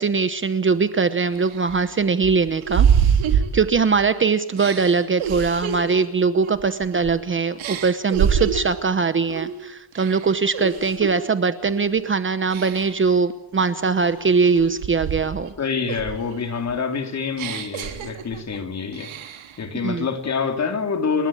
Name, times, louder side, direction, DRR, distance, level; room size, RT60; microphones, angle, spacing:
voice 1, 0.0-2.9 3.3-15.5 19.8-20.1, right 5 dB, 25° right, 1.0 m, -21 dB
sound 1, 0.7-0.8 1.3-4.1 4.6-7.2 7.6-8.8 9.3-9.6 9.9-11.2 11.6-12.0 12.5-13.1 13.6-15.5 15.9-18.6 18.9-19.6, right 8 dB, 90° right, 3.7 m, -26 dB
voice 2, 15.6-19.1 19.6-21.3, left 5 dB, 35° left, 3.1 m, -26 dB
30.0 x 21.0 x 8.8 m
cardioid pair, 175°, 46 cm